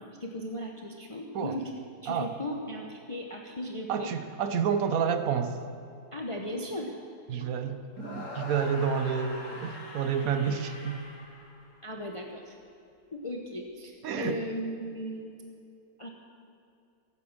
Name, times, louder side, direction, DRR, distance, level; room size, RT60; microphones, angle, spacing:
voice 1, 0.0-1.7 2.0-4.1 6.1-7.0 11.8-12.6 13.1-15.3 16.0-16.1, left 1 dB, 25° left, 1 dB, 0.9 m, -37 dB
voice 2, 3.9-5.6 7.3-11.0 14.0-14.4, right 7 dB, 70° right, 9 dB, 1.3 m, -29 dB
sound 1, 7.9-12.1, left 2 dB, 55° left, 2.2 m, -42 dB
15.0 x 8.8 x 7.3 m, 2.6 s
omnidirectional pair, 1.6 m